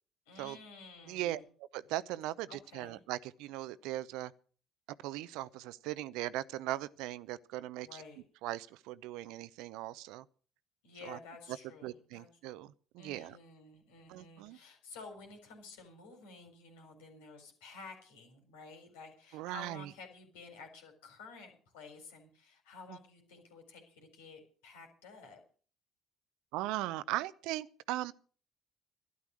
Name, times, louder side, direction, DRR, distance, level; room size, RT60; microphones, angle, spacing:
voice 1, 0.3-1.4 2.5-3.0 7.8-8.2 10.8-12.3 13.0-25.4, left 4 dB, 80° left, 4.2 m, -52 dB
voice 2, 1.1-1.4 1.7-4.3 5.0-8.0 8.4-10.2 11.0-11.2 11.8-13.4 14.1-14.6 19.3-19.9 22.9-23.0 26.5-28.1, right 15 dB, 70° right, 0.6 m, -39 dB
12.5 x 11.0 x 6.2 m
hypercardioid pair, 55°, 0 cm